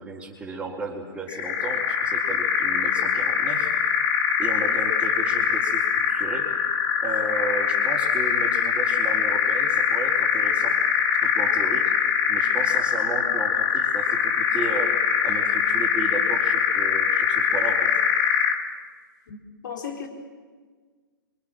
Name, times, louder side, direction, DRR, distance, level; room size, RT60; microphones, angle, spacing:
voice 1, 0.0-3.8 4.4-6.5 7.0-10.8 11.2-11.9 12.3-18.0, right 2 dB, 10° right, -8 dB, 4.1 m, -34 dB
sound 1, 1.3-18.7, left 7 dB, 25° left, 2.1 m, -23 dB
voice 2, 19.3-20.1, left 7 dB, 60° left, 2 dB, 4.4 m, -36 dB
29.0 x 26.0 x 7.6 m, 1.5 s
figure-of-eight pair, 120°, 12 cm